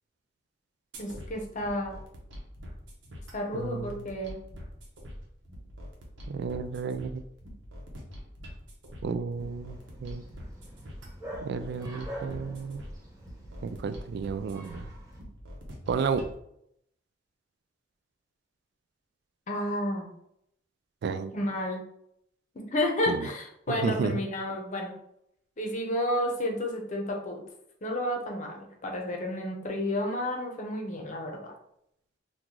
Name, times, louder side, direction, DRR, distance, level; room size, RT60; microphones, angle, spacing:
sound 1, 0.9-16.3, equal, 90° right, 0.8 m, -45 dB
voice 1, 1.0-2.0 3.3-4.4 19.5-20.1 21.3-21.8 22.5-24.9 25.6-27.4 27.8-31.5, left 1 dB, 40° left, 1 dB, 0.7 m, -31 dB
voice 2, 3.5-4.1 6.3-7.2 9.0-10.2 11.4-12.8 13.6-14.9 15.9-16.2 21.0-21.3 23.1-23.3 23.7-24.2, right 5 dB, 65° right, 10 dB, 0.3 m, -32 dB
Bark, 9.4-15.2, equal, 20° right, 0.8 m, -46 dB
3.0 x 2.3 x 3.7 m, 0.73 s
head